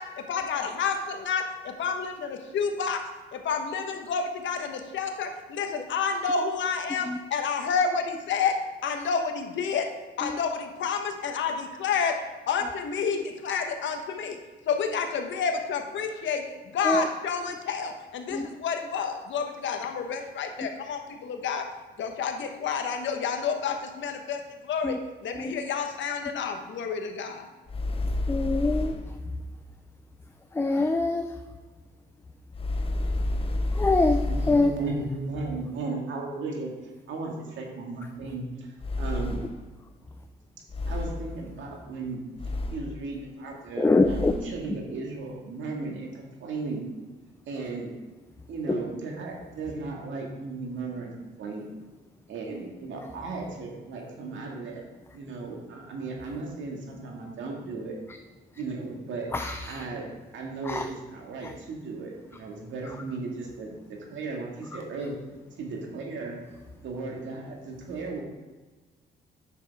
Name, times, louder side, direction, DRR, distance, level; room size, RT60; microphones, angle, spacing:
voice 1, 0.0-14.4 14.7-21.7 22.0-27.5, left 6 dB, 70° left, 5 dB, 1.2 m, -30 dB
sound 1, 27.7-29.2 32.5-34.8 38.8-39.7 40.7-41.4 42.4-43.0 44.0-44.6, left 2 dB, 30° left, 0.8 m, -30 dB
voice 2, 28.3-28.9 30.5-31.3 33.7-34.7 43.8-44.3 48.7-48.8 59.3-59.8 60.7-60.9, left 2 dB, 10° left, 6 dB, 0.5 m, -24 dB
voice 3, 34.3-36.7 37.1-39.4 40.8-46.9 47.5-48.0 48.5-51.7 52.3-54.8 55.1-58.0 58.5-59.3 59.6-60.1 60.3-65.1 65.6-66.4 66.8-68.2, right 3 dB, 75° right, 0 dB, 2.0 m, -36 dB
9.4 x 6.6 x 3.6 m, 1.3 s
cardioid pair, 90°, 20 cm